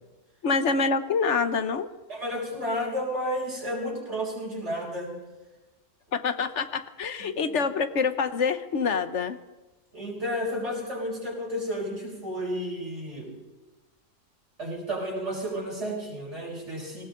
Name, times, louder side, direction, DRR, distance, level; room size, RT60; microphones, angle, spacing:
voice 1, 0.4-1.9 6.1-9.4, left 5 dB, 70° left, 11 dB, 1.3 m, -26 dB
voice 2, 2.1-5.2 7.2-7.4 9.9-13.3 14.6-17.0, equal, 65° right, -2 dB, 5.7 m, -32 dB
19.0 x 17.5 x 3.9 m, 1.1 s
omnidirectional pair, 1.3 m